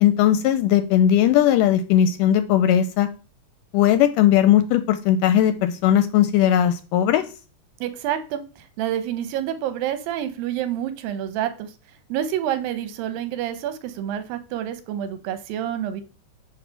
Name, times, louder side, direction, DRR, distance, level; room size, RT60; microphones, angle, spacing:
voice 1, 0.0-3.1 3.7-7.2, left 11 dB, 80° left, 10 dB, 2.0 m, -18 dB
voice 2, 7.8-8.4 8.8-11.7 12.1-16.0, right 11 dB, 85° right, 10 dB, 2.6 m, -28 dB
8.6 x 3.3 x 5.6 m, 0.35 s
omnidirectional pair, 4.0 m